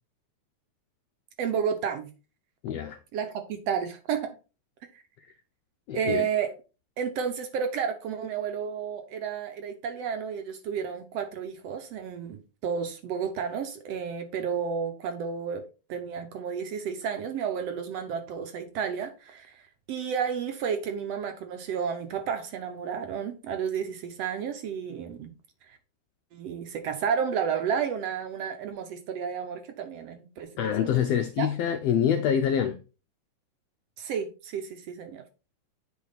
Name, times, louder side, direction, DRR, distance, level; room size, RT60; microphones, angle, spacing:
voice 1, 1.4-2.1 3.1-4.4 5.9-6.5 7.0-15.6 15.9-19.6 19.9-25.3 25.7-25.8 26.3-30.9 31.4-31.5 34.0-35.2, right 7 dB, 65° right, 1.8 m, -31 dB
voice 2, 2.6-3.0 5.9-6.2 30.6-32.8, left 8 dB, 80° left, 1.4 m, -26 dB
8.8 x 4.7 x 4.0 m
omnidirectional pair, 3.5 m